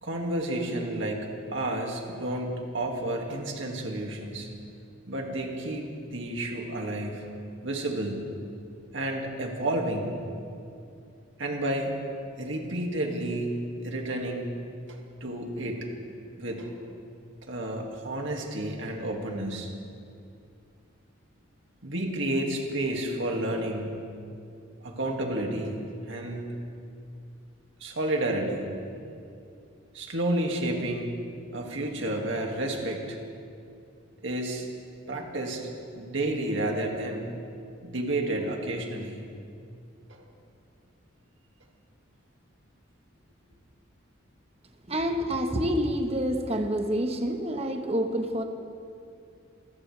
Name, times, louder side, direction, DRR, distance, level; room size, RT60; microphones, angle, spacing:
voice 1, 0.0-4.5 5.1-7.3 7.6-8.3 8.9-10.2 11.4-12.0 12.4-13.5 13.8-14.6 14.9-15.9 16.4-16.8 17.5-19.7 21.8-24.0 24.8-26.5 27.8-28.7 29.9-31.2 31.5-33.2 34.2-34.7 35.1-35.7 35.9-37.3 37.8-39.2 40.1-40.2, right 1 dB, 65° right, 1 dB, 2.1 m, -31 dB
voice 2, 44.9-48.4, equal, 30° right, 4 dB, 1.2 m, -27 dB
26.5 x 15.5 x 3.4 m, 2.5 s
head